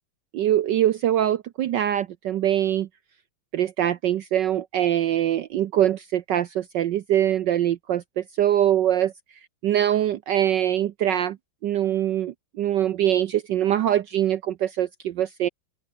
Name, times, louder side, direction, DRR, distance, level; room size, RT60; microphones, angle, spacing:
voice 1, 0.3-2.9 3.5-9.1 9.6-11.4 11.6-15.5, right 11 dB, 65° right, 1.3 m, -23 dB
open air
omnidirectional pair, 2.3 m